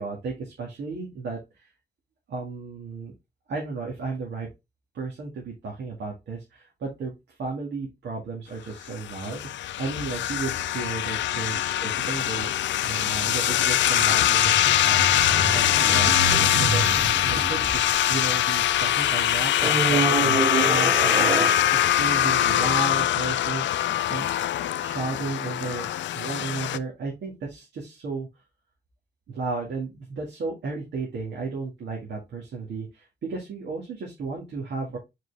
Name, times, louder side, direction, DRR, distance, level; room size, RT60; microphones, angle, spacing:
voice 1, 0.0-1.7 2.3-3.1 3.5-4.5 4.9-12.5 12.8-16.2 16.6-21.5 21.8-24.3 24.8-25.9 26.1-28.3 29.3-35.0, right 4 dB, 70° right, -1 dB, 2.0 m, -34 dB
sound 1, 8.9-26.8, left 12 dB, 90° left, 0.4 m, -23 dB
sound 2, 14.1-18.8 19.6-22.1 22.8-22.9, right 3 dB, 30° right, 1.7 m, -28 dB
7.2 x 4.5 x 3.4 m, 0.23 s
wide cardioid pair, 175°, 18 cm